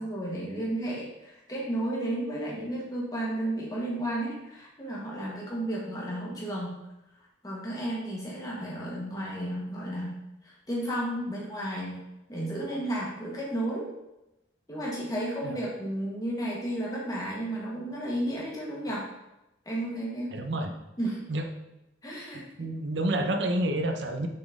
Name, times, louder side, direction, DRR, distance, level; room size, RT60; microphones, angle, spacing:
voice 1, 0.0-6.8 7.4-12.0 12.3-13.9 14.7-19.1 19.6-20.4 21.0-21.2 22.0-22.4, right 1 dB, 20° left, -4 dB, 1.5 m, -33 dB
voice 2, 20.3-20.7 21.3-21.5 22.6-24.3, right 1 dB, 65° right, 5 dB, 0.7 m, -28 dB
6.4 x 4.2 x 3.6 m, 0.92 s
head